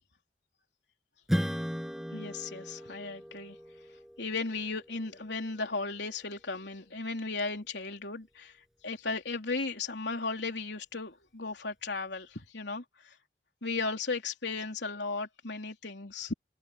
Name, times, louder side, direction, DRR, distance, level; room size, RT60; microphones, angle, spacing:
Strum, 1.3-6.2, equal, ahead, 7.0 m, -37 dB
voice 1, 2.1-3.6 4.2-8.5 8.8-13.1 13.6-16.3, left 3 dB, 85° left, 3.5 m, -35 dB
head